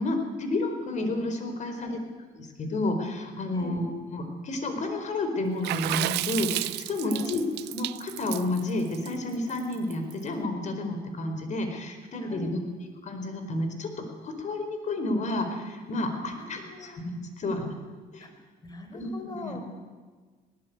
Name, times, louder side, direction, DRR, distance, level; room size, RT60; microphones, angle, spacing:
voice 1, 0.0-2.0 2.4-7.4 7.7-12.6 13.0-13.9 14.2-17.7 18.1-18.3 18.9-19.6, left 2 dB, 45° left, 6 dB, 4.6 m, -31 dB
voice 2, 1.6-2.0 3.5-3.8 7.1-7.3 12.2-12.5 16.2-17.0 18.2-19.6, left 1 dB, 25° left, 6 dB, 4.6 m, -42 dB
Water / Splash splatter, 5.6-10.1, right 18 dB, 85° right, 0.6 m, -32 dB
19.5 x 18.0 x 9.5 m, 1.4 s
cardioid pair, 110°, 17 cm